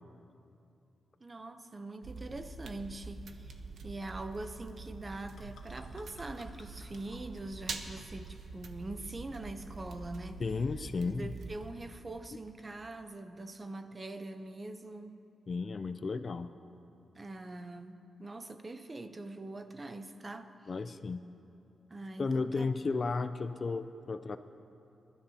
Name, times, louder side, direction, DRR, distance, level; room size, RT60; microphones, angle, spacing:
voice 1, 1.2-10.4 11.1-15.2 17.1-20.7 21.9-22.7, right 2 dB, 20° right, 9 dB, 0.6 m, -43 dB
sound 1, 2.0-11.7, right 3 dB, 60° right, 0.9 m, -45 dB
sound 2, 5.4-10.5, left 3 dB, 85° left, 1.6 m, -61 dB
voice 2, 10.4-11.3 15.5-16.5 20.7-21.3 22.2-24.4, left 4 dB, 30° left, 11 dB, 0.4 m, -33 dB
27.0 x 13.0 x 2.8 m, 2.7 s
wide cardioid pair, 170°, 0 cm